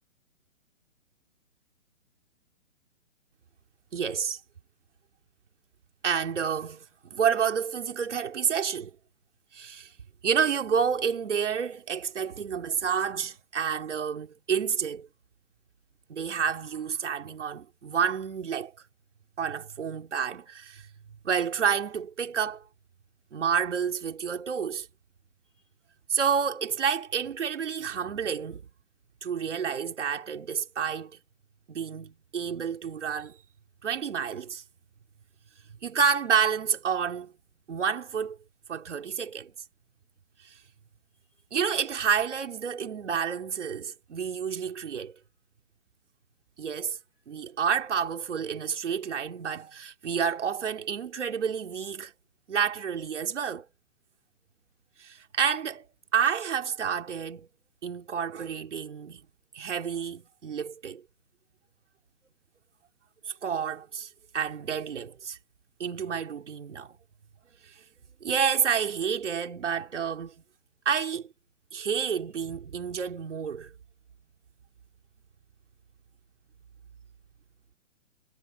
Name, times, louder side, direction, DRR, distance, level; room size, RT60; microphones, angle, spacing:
voice 1, 3.9-4.4 6.0-8.9 9.5-9.9 10.2-15.1 16.1-18.7 19.4-20.9 21.2-22.6 23.3-24.9 26.1-28.6 29.2-31.2 31.7-33.4 33.8-34.6 35.8-37.3 37.7-38.4 38.7-39.5 40.4-40.6 41.5-45.2 46.6-47.0 47.3-52.1 52.5-53.7 55.0-55.9 56.1-57.5 57.8-59.2 59.5-61.0 63.3-65.4 65.8-67.0 68.2-70.3 70.9-71.3 71.7-73.7, right 7 dB, 60° right, 3.7 m, -29 dB
hypercardioid pair, 175°, 40 cm